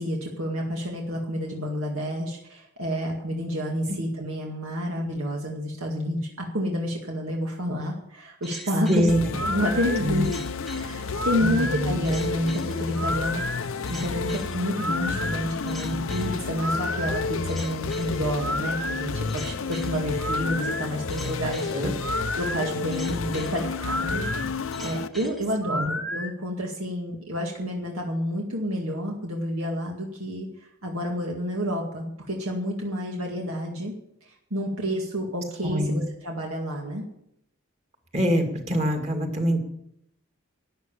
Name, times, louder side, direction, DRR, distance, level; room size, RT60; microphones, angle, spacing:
voice 1, 0.0-9.1 9.4-10.3 10.7-13.4 13.9-21.7 22.4-24.3 24.8-33.9 34.2-37.0, equal, 80° right, 0 dB, 2.1 m, -29 dB
sound 1, 8.4-26.3, left 1 dB, ahead, 1.1 m, -33 dB
voice 2, 8.9-9.2 10.0-10.3 11.4-12.0 21.7-21.9 25.8-25.9 35.6-36.0 38.1-39.6, equal, 30° right, 4 dB, 2.2 m, -24 dB
sound 2, 9.1-25.1, left 4 dB, 70° left, 0.7 m, -31 dB
12.5 x 9.5 x 7.2 m, 0.76 s
head